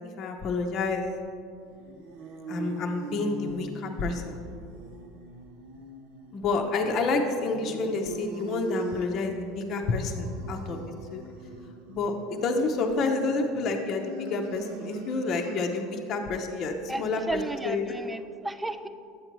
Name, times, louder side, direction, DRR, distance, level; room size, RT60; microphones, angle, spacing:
voice 1, 0.2-1.1 2.5-4.4 6.3-11.2 11.9-17.4 17.6-17.9, left 3 dB, 45° left, 3 dB, 0.7 m, -29 dB
sound 1, 1.7-16.2, right 2 dB, 75° right, 0.7 m, -41 dB
voice 2, 16.9-18.9, right 2 dB, 10° right, 11 dB, 0.4 m, -34 dB
9.5 x 7.7 x 3.0 m, 2.4 s
hypercardioid pair, 80°, 0 cm